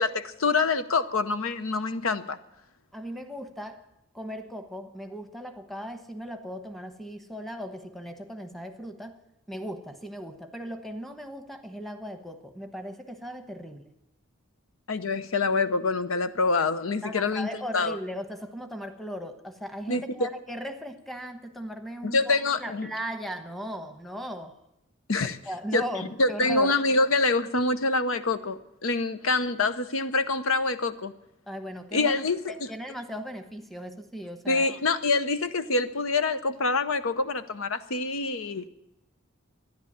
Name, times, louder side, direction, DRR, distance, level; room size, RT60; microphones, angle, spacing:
voice 1, 0.0-2.4 14.9-17.5 17.7-18.0 19.9-20.3 22.0-22.9 25.1-25.4 25.7-25.8 26.2-31.1 31.9-32.7 34.5-38.6, left 3 dB, 80° left, 12 dB, 0.8 m, -26 dB
voice 2, 2.9-3.9 4.1-9.2 9.5-13.9 17.0-24.6 25.5-26.8 31.5-32.2 32.5-34.7, equal, ahead, 6 dB, 1.1 m, -38 dB
13.5 x 10.5 x 8.7 m, 0.90 s
head